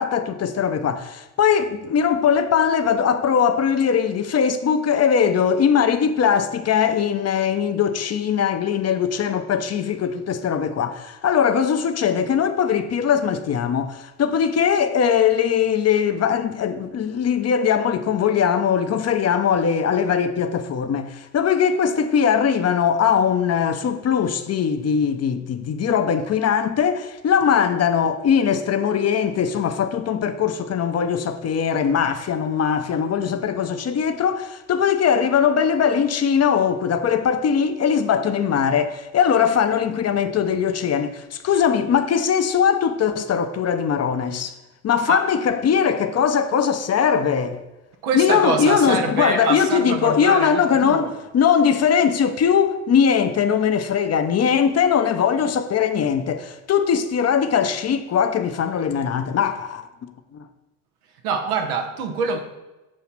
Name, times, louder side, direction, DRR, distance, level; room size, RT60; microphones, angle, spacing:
voice 1, 0.0-44.5 44.8-47.6 48.1-60.4, left 7 dB, 35° left, 0.6 m, -20 dB
voice 2, 48.0-51.1 61.2-62.4, right 5 dB, 90° right, 0.9 m, -25 dB
7.3 x 2.8 x 5.9 m
hypercardioid pair, 65°, 43 cm